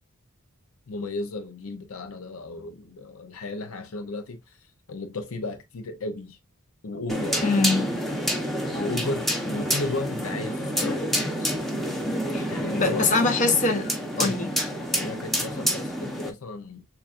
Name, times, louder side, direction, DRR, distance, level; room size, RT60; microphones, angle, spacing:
voice 1, 0.9-6.4 6.8-7.5 8.7-11.5 12.5-13.2 14.2-14.4 14.9-16.8, left 2 dB, 75° left, 0.6 m, -34 dB
sound 1, 7.1-16.3, equal, ahead, 0.8 m, -28 dB
voice 2, 7.4-7.9 12.3-12.5 12.7-14.5, left 3 dB, 35° left, 0.8 m, -23 dB
6.8 x 2.4 x 2.5 m
head